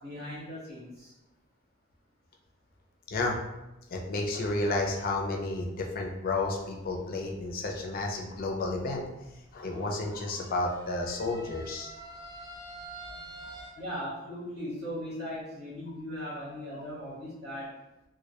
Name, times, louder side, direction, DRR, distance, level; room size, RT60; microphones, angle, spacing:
voice 1, 0.0-1.1 13.8-17.7, equal, 70° right, -9 dB, 1.0 m, -38 dB
voice 2, 3.9-9.0 9.5-11.9 13.4-13.6, left 2 dB, 45° left, 1 dB, 0.4 m, -31 dB
sound 1, 6.4-13.7, right 2 dB, 20° right, 0.4 m, -48 dB
2.2 x 2.0 x 2.8 m, 0.97 s
head